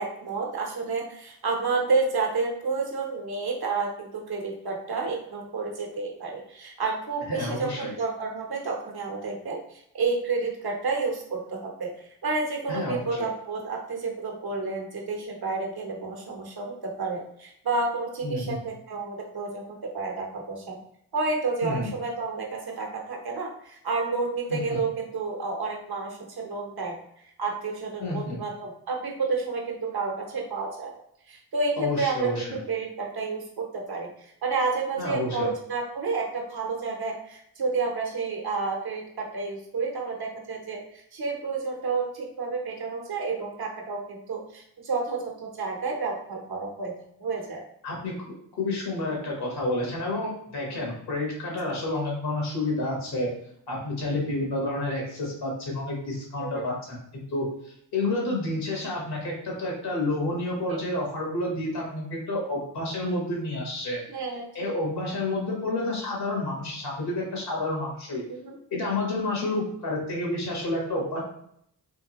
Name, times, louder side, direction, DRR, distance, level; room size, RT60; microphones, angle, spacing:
voice 1, 0.0-20.8 21.1-30.9 31.3-46.9 47.2-47.6 51.7-51.8 56.4-56.6 60.7-60.8 64.1-64.7 68.3-68.6, right 4 dB, 70° right, 0 dB, 1.0 m, -30 dB
voice 2, 7.3-7.9 12.7-13.3 18.2-18.6 21.6-21.9 24.5-24.8 28.0-28.4 31.8-32.6 35.0-35.5 47.8-48.1 48.6-53.3 53.7-57.4 57.9-64.0 64.5-68.2 68.7-71.2, left 2 dB, 80° left, -2 dB, 1.5 m, -29 dB
3.6 x 2.7 x 3.0 m, 0.72 s
cardioid pair, 50°, 38 cm